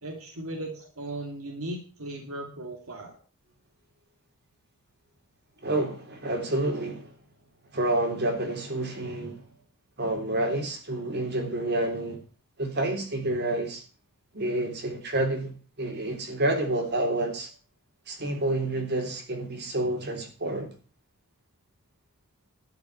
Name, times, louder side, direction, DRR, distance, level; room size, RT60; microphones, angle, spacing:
voice 1, 0.0-3.2, right 1 dB, 75° right, 2.7 m, -37 dB
voice 2, 5.6-7.1 7.7-9.4 10.0-12.2 12.6-13.8 14.3-17.5 18.1-20.7, right 1 dB, 50° right, 3.5 m, -29 dB
13.0 x 6.8 x 8.7 m
head